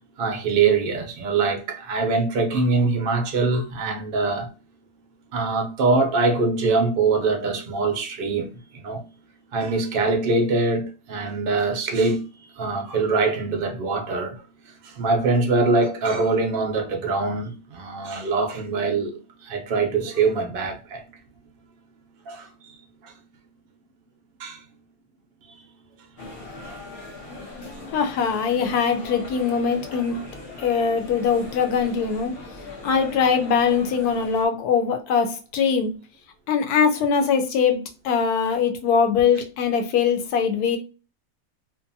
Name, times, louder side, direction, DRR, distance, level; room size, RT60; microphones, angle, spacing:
voice 1, 0.2-4.5 5.3-9.0 9.5-12.3 12.6-21.0 22.3-23.1 24.4-24.6 26.6-26.8, right 3 dB, 60° right, 0.6 m, -23 dB
sound 1, 26.2-34.4, left 2 dB, 45° left, 1.0 m, -40 dB
voice 2, 27.9-30.2 30.6-32.3 32.8-35.9 36.5-40.8, left 6 dB, 85° left, 1.1 m, -22 dB
2.7 x 2.5 x 2.6 m
omnidirectional pair, 1.6 m